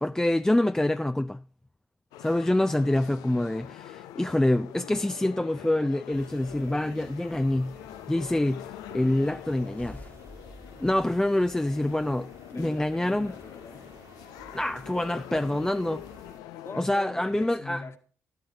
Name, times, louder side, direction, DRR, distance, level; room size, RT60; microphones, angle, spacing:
voice 1, 0.0-1.4 2.2-7.7 8.1-10.0 10.8-13.3 14.5-16.0 16.8-17.8, left 1 dB, 10° left, 0.4 m, -26 dB
sound 1, 2.1-16.8, left 13 dB, 90° left, 0.4 m, -45 dB
sound 2, 6.1-16.4, right 3 dB, 60° right, 1.8 m, -53 dB
sound 3, 9.5-12.2, left 1 dB, 30° left, 1.5 m, -49 dB
voice 2, 12.5-14.0 16.6-18.0, left 4 dB, 45° left, 1.8 m, -42 dB
12.5 x 11.5 x 2.7 m
supercardioid pair, 55°, 6 cm